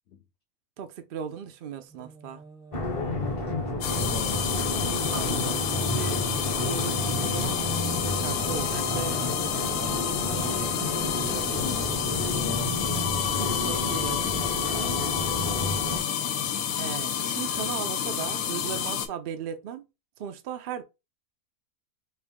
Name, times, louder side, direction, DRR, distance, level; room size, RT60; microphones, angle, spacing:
voice 1, 0.8-2.4 5.1-6.2 6.6-7.6 8.0-10.7 11.3-11.6 13.4-14.7 16.8-19.9 20.2-20.8, right 8 dB, 70° right, 0.5 m, -37 dB
Singing, 1.9-19.0, right 2 dB, 5° right, 0.4 m, -44 dB
sound 1, 2.7-16.0, left 1 dB, 30° left, 0.7 m, -31 dB
voice 2, 2.9-4.9 10.8-11.0 11.5-13.4 15.4-16.0, left 7 dB, 65° left, 0.7 m, -39 dB
sound 2, 3.8-19.1, left 9 dB, 90° left, 1.1 m, -29 dB
3.4 x 2.5 x 3.5 m
omnidirectional pair, 1.5 m